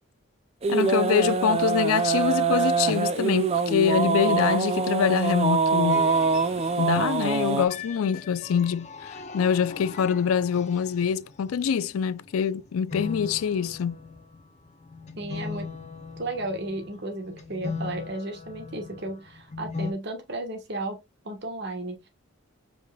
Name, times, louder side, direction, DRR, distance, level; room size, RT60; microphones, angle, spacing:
sound 1, 0.6-7.6, right 5 dB, 30° right, 0.4 m, -24 dB
voice 1, 0.7-6.1 6.8-14.0, left 7 dB, 85° left, 0.4 m, -25 dB
sound 2, 5.9-19.9, left 4 dB, 35° left, 0.6 m, -39 dB
voice 2, 15.2-15.7 16.2-21.0 21.2-22.1, right 2 dB, 55° right, 1.3 m, -34 dB
5.0 x 4.7 x 2.3 m
head